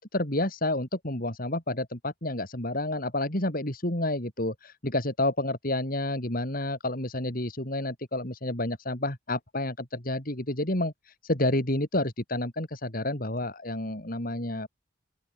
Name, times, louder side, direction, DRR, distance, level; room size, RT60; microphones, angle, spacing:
voice 1, 0.0-14.7, left 1 dB, 45° left, 4.4 m, -30 dB
open air
head